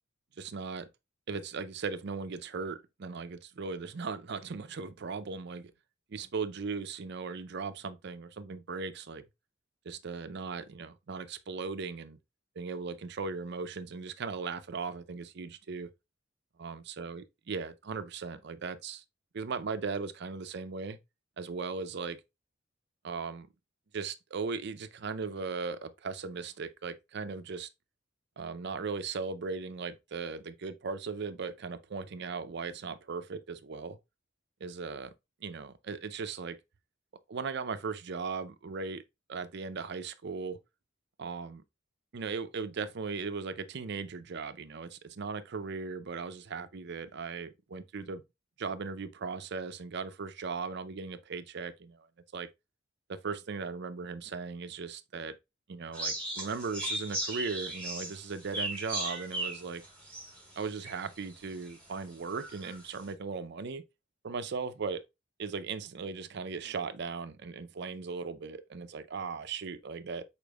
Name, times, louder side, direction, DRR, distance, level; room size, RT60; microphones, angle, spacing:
voice 1, 0.4-0.9 1.3-5.7 6.1-9.2 9.8-12.2 12.6-15.9 16.6-19.0 19.3-21.0 21.4-22.2 23.0-23.5 23.9-27.7 28.4-34.0 34.6-35.1 35.4-36.6 37.3-39.0 39.3-40.6 41.2-41.6 42.1-48.2 48.6-52.1 52.3-52.5 53.1-55.4 55.7-59.8 60.6-63.8 64.2-65.0 65.4-70.2, right 4 dB, 60° right, 0.5 m, -38 dB
sound 1, 55.9-61.2 61.7-61.8 62.3-62.8, right 1 dB, 10° left, 3.4 m, -36 dB
5.1 x 4.4 x 2.3 m
head